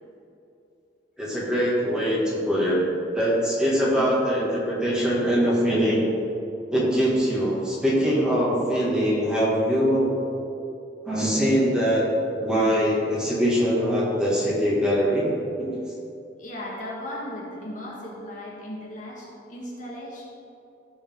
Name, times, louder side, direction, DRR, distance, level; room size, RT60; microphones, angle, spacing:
voice 1, 1.2-2.8 3.1-6.1 6.7-10.1 11.1-12.0 12.4-15.7, equal, 5° right, -8 dB, 2.3 m, -22 dB
voice 2, 16.4-20.2, left 1 dB, 45° left, -4 dB, 1.9 m, -36 dB
15.5 x 5.3 x 3.9 m, 2.7 s
head